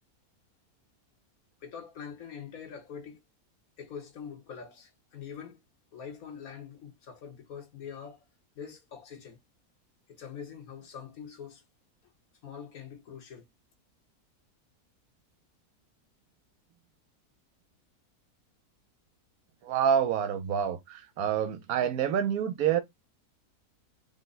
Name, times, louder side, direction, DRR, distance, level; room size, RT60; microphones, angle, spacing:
voice 1, 1.6-3.2 3.8-5.6 5.9-8.2 8.5-9.4 10.1-11.6 12.4-13.5, left 7 dB, 65° left, 1.5 m, -44 dB
voice 2, 19.6-22.8, right 9 dB, 70° right, 1.1 m, -27 dB
5.1 x 2.2 x 3.9 m
omnidirectional pair, 1.7 m